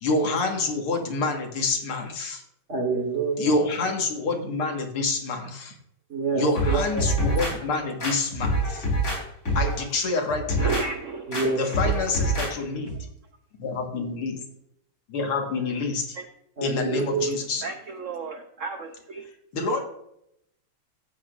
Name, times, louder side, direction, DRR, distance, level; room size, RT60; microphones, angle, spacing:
voice 1, 0.0-2.4 3.4-5.8 6.3-8.9 9.6-10.8 11.6-13.0 13.6-14.4 15.1-16.2 16.6-17.6 19.5-19.8, left 3 dB, 90° left, 3 dB, 2.5 m, -27 dB
voice 2, 2.7-3.6 6.1-7.1 11.3-11.6 11.8-12.0 16.6-17.3, right 4 dB, 35° right, 4 dB, 1.6 m, -27 dB
sound 1, 6.6-7.5 8.0-9.2 9.5-9.8 10.3-10.8 11.3-11.5 11.7-12.5 12.9-13.0, right 1 dB, 40° left, 4.5 m, -25 dB
voice 3, 10.6-11.9 12.3-12.6 16.2-16.3 17.6-19.3, right 4 dB, 80° right, 6 dB, 0.7 m, -34 dB
13.0 x 8.7 x 2.5 m, 0.76 s
omnidirectional pair, 2.3 m